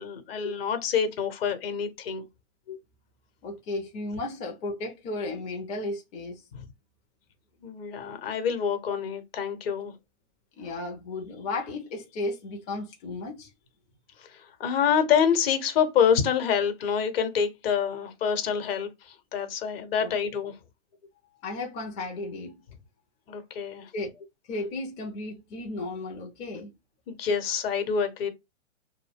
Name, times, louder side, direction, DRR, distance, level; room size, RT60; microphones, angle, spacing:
voice 1, 0.0-2.2 7.6-9.9 14.6-20.5 23.3-23.9 27.1-28.3, left 7 dB, 50° left, 1.1 m, -26 dB
voice 2, 3.4-6.4 10.6-13.5 20.0-20.1 21.4-22.6 23.9-26.7, left 2 dB, 20° left, 0.5 m, -34 dB
2.2 x 2.1 x 3.4 m
hypercardioid pair, 130°, 37 cm